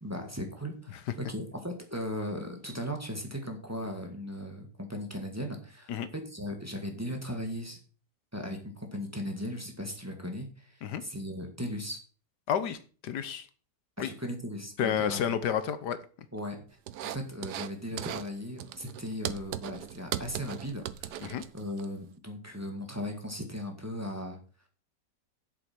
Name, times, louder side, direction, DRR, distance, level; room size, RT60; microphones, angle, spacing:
voice 1, 0.0-7.8 8.3-12.0 14.0-15.2 16.3-16.6 17.0-24.4, equal, 10° right, 1.9 m, -37 dB
voice 2, 12.5-12.8 13.0-13.5 14.0-14.1 14.8-16.0 21.2-21.4, left 8 dB, 85° left, 1.5 m, -30 dB
sound 1, 16.9-17.7 18.0-18.3 18.6-21.9, right 11 dB, 80° right, 1.3 m, -38 dB
8.3 x 7.5 x 6.1 m
omnidirectional pair, 1.8 m